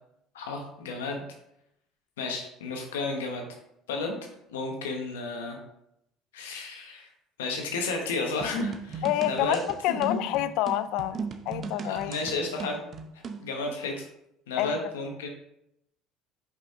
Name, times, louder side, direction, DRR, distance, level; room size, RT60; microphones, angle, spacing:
voice 1, 0.3-1.2 2.2-3.5 3.9-4.2 4.5-5.6 6.3-7.1 7.4-9.6 9.9-10.3 11.9-12.8 13.4-14.0 14.5-15.3, left 3 dB, 90° left, 2 dB, 1.2 m, -32 dB
sound 1, 8.4-13.5, right 5 dB, 45° right, 0.7 m, -37 dB
voice 2, 9.0-9.6 9.8-12.1 14.6-14.8, left 13 dB, 70° left, 13 dB, 0.3 m, -28 dB
5.5 x 5.1 x 3.7 m, 0.79 s
hypercardioid pair, 70°, 0 cm